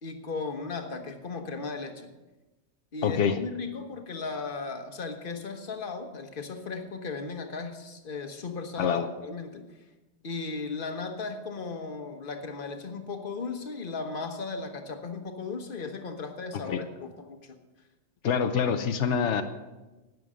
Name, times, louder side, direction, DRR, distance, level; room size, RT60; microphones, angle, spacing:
voice 1, 0.0-2.1 2.9-9.6 10.2-17.6, left 4 dB, 50° left, 5 dB, 1.4 m, -36 dB
voice 2, 3.0-3.4 8.8-9.1 16.5-16.8 18.2-19.4, left 7 dB, 90° left, 8 dB, 1.1 m, -26 dB
12.0 x 9.3 x 6.2 m, 1.1 s
omnidirectional pair, 1.2 m